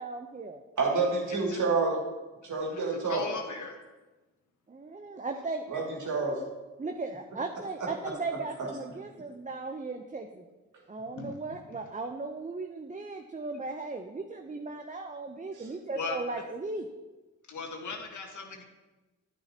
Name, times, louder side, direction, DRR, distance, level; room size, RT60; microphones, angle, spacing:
voice 1, 0.0-0.6 4.7-5.6 6.8-10.4 10.9-16.9, right 3 dB, 20° right, 5 dB, 0.8 m, -37 dB
voice 2, 0.8-2.0 2.4-3.3 5.7-6.4 7.8-7.9, right 4 dB, 60° right, -1 dB, 2.7 m, -28 dB
voice 3, 2.7-3.8 11.1-11.4 13.6-13.7 15.9-16.2 17.5-18.6, left 4 dB, 60° left, 3 dB, 1.6 m, -38 dB
9.6 x 8.8 x 2.9 m, 1.2 s
supercardioid pair, 45°, 34 cm